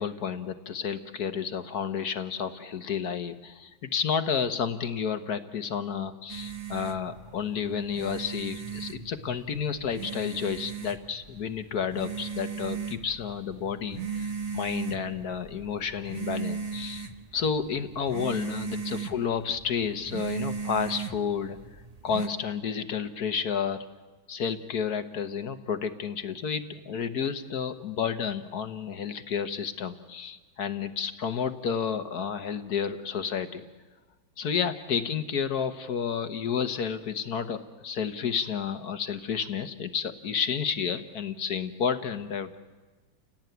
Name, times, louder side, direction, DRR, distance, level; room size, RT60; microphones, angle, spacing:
voice 1, 0.0-17.1 17.3-21.6 22.0-23.9 24.3-33.6 34.4-42.6, left 7 dB, 55° left, 10 dB, 1.5 m, -31 dB
sound 1, 6.3-22.3, right 6 dB, 30° right, 0.7 m, -37 dB
29.5 x 18.0 x 9.3 m, 1.2 s
omnidirectional pair, 2.1 m